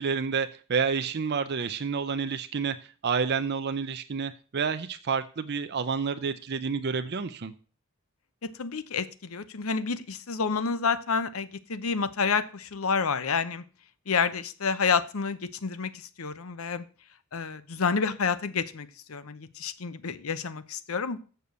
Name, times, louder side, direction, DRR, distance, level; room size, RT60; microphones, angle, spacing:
voice 1, 0.0-2.8 3.0-7.5, right 5 dB, 50° right, 9 dB, 0.5 m, -29 dB
voice 2, 8.6-13.6 14.1-15.9 16.2-16.8 17.3-21.2, left 5 dB, 70° left, 15 dB, 0.8 m, -29 dB
6.9 x 6.3 x 6.8 m, 0.38 s
head